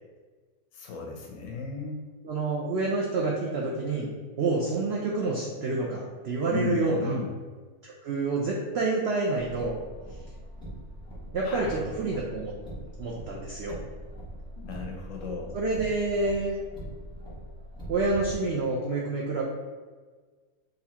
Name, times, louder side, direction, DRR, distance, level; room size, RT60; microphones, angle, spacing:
voice 1, 0.7-2.0 6.5-7.3 11.4-11.8 14.6-15.6, left 4 dB, 70° left, 1 dB, 0.8 m, -35 dB
voice 2, 2.2-4.1 4.4-7.1 7.8-9.7 11.3-12.5 13.0-13.8 15.5-16.6 17.9-19.4, right 3 dB, 75° right, -3 dB, 0.6 m, -28 dB
Car, 9.3-18.4, right 1 dB, 5° left, 0.7 m, -42 dB
3.9 x 2.6 x 2.8 m, 1.4 s
omnidirectional pair, 1.6 m